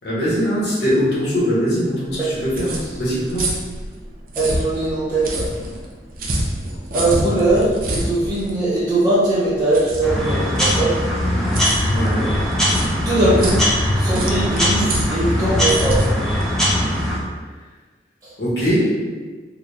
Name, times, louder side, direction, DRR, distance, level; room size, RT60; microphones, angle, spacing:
voice 1, 0.0-3.6 11.9-12.4 13.3-13.5 14.0-14.4 18.4-19.0, equal, 65° left, -8 dB, 1.4 m, -22 dB
sound 1, 2.1-17.3, right 1 dB, 50° right, 0.5 m, -28 dB
voice 2, 4.3-5.5 6.9-11.0 13.0-13.6 13.9-16.0 18.2-18.3, right 2 dB, 20° right, -11 dB, 1.0 m, -20 dB
sound 2, 10.0-17.2, equal, 5° left, 0.6 m, -20 dB
3.7 x 2.3 x 3.2 m, 1.4 s
head